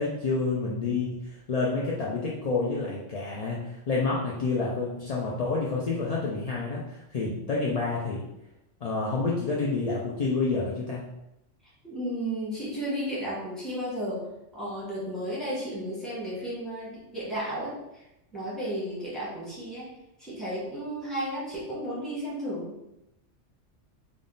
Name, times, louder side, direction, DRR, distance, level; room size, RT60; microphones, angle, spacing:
voice 1, 0.0-8.3 8.8-11.1, left 3 dB, 55° left, -4 dB, 0.4 m, -29 dB
voice 2, 11.8-14.3 14.5-18.0 18.3-19.9 20.2-22.7, equal, ahead, -8 dB, 1.3 m, -33 dB
3.6 x 2.4 x 3.8 m, 0.89 s
omnidirectional pair, 1.3 m